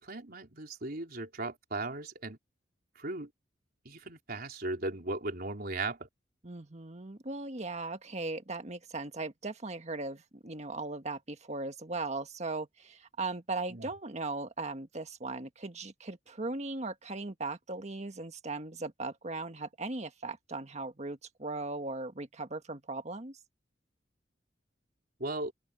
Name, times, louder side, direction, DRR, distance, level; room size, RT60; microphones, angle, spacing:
voice 1, 0.0-2.4 3.0-3.3 3.8-6.1 13.7-13.9 25.2-25.5, right 2 dB, 55° right, 4.1 m, -37 dB
voice 2, 6.4-23.4, right 3 dB, 40° right, 1.6 m, -38 dB
open air
head